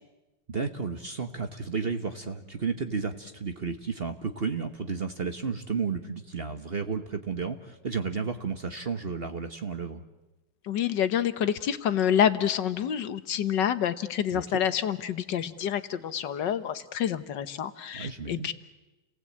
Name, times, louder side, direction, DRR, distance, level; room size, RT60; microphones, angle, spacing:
voice 1, 0.5-10.0 14.3-14.6 17.9-18.5, right 5 dB, 35° right, 7 dB, 1.1 m, -32 dB
voice 2, 10.7-18.5, left 9 dB, 70° left, 12 dB, 1.7 m, -27 dB
30.0 x 19.0 x 8.6 m, 1.1 s
omnidirectional pair, 2.0 m